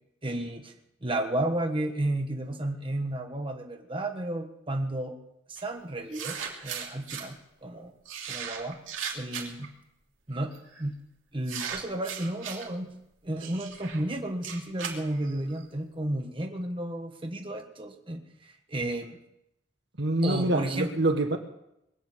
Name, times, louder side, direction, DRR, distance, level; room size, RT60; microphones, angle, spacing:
voice 1, 0.2-0.7 1.0-5.1 5.5-7.9 8.3-8.8 9.1-9.7 10.3-10.5 10.8-11.0 11.3-12.9 13.2-19.2 20.2-20.9, right 1 dB, 25° right, 3 dB, 1.4 m, -32 dB
sound 1, 5.6-5.7 6.1-7.3 8.0-9.7 10.5-10.8 11.5-12.7 13.4-15.6, right 7 dB, 90° right, 3.1 m, -37 dB
voice 2, 20.0-21.4, right 1 dB, 60° right, 6 dB, 1.5 m, -25 dB
21.5 x 9.0 x 7.5 m, 0.83 s
head